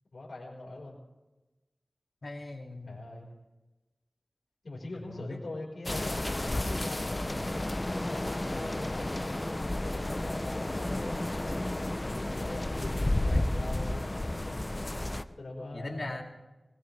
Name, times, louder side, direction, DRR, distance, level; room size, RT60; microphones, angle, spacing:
voice 1, 0.1-1.0 2.8-3.3 4.6-6.2 6.7-7.5 8.0-11.6 12.1-14.7 15.3-16.2, left 2 dB, 80° left, -5 dB, 4.7 m, -42 dB
voice 2, 2.2-3.0 4.9-5.4 13.3-13.5 15.7-16.2, left 2 dB, 60° left, 0 dB, 2.6 m, -39 dB
sound 1, 5.9-15.2, left 1 dB, 25° left, 0.6 m, -32 dB
20.5 x 20.5 x 3.4 m, 1.1 s
wide cardioid pair, 80°, 0 cm